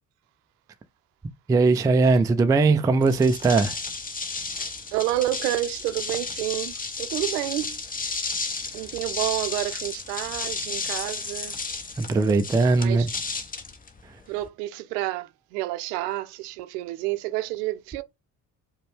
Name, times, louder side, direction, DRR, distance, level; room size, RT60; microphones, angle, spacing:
voice 1, 1.5-3.8 12.0-13.1, right 3 dB, 10° right, 0.3 m, -20 dB
sound 1, 3.0-14.5, left 4 dB, 15° left, 0.8 m, -33 dB
voice 2, 4.9-8.3 8.7-11.5 12.7-13.1 14.3-18.0, right 16 dB, 65° right, 0.6 m, -29 dB
4.9 x 2.3 x 3.3 m
figure-of-eight pair, 45°, 50 cm